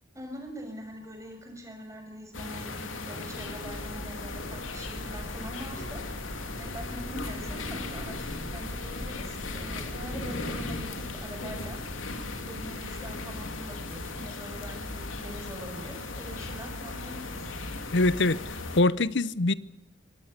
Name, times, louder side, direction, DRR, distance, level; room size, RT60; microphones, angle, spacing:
voice 1, 0.1-6.0 6.6-11.8 12.5-17.5, equal, 15° right, 6.3 m, -43 dB
sound 1, 2.3-18.8, left 3 dB, 85° left, 2.9 m, -37 dB
sound 2, 3.3-13.9, equal, 25° left, 1.6 m, -43 dB
voice 2, 17.9-19.5, left 2 dB, 60° left, 0.8 m, -24 dB
25.5 x 17.5 x 8.3 m
head